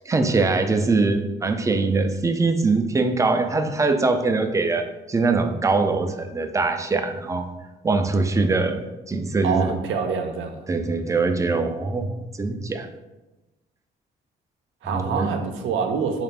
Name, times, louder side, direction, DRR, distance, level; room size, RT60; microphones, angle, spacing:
voice 1, 0.0-7.5 7.8-8.8 9.1-9.6 10.7-12.9 14.9-15.3, right 3 dB, 15° right, 7 dB, 0.3 m, -22 dB
voice 2, 9.4-10.7 14.8-16.2, right 5 dB, 80° right, 5 dB, 0.5 m, -26 dB
4.0 x 2.4 x 3.3 m, 1.1 s
cardioid pair, 90°, 20 cm